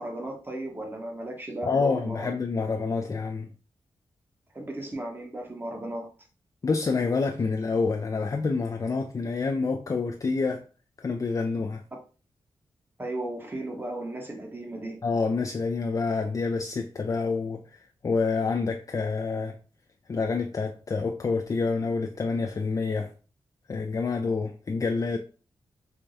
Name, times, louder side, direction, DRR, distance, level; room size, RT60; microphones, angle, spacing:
voice 1, 0.0-2.3 4.5-6.1 13.0-15.0, right 1 dB, 20° right, 1.0 m, -35 dB
voice 2, 1.6-3.5 6.6-10.6 11.0-11.8 15.0-19.6 20.1-23.1 23.7-25.2, left 4 dB, 35° left, 0.4 m, -27 dB
4.5 x 2.2 x 2.6 m
cardioid pair, 70°, 10 cm